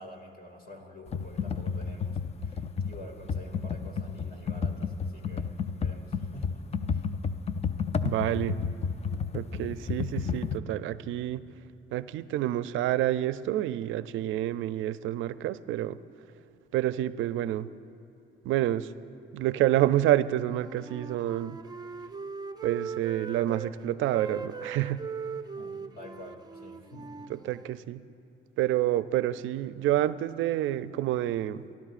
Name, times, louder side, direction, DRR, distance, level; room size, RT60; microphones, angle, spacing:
voice 1, 0.0-5.5 5.7-6.6 6.9-7.1 25.6-27.3, left 1 dB, 50° left, 1 dB, 2.4 m, -47 dB
Computer keyboard, 1.1-10.6, left 6 dB, 30° left, 0.5 m, -31 dB
voice 2, 8.0-8.6 9.3-11.4 11.9-16.0 16.7-17.7 18.4-18.9 19.3-21.6 22.6-25.0 27.3-28.0 28.6-31.7, right 13 dB, 80° right, 15 dB, 0.4 m, -28 dB
Wind instrument woodwind instrument, 20.4-23.7 24.0-27.8, right 5 dB, 20° right, 0.4 m, -40 dB
28.0 x 12.0 x 2.5 m, 2.9 s
cardioid pair, 90°, 20 cm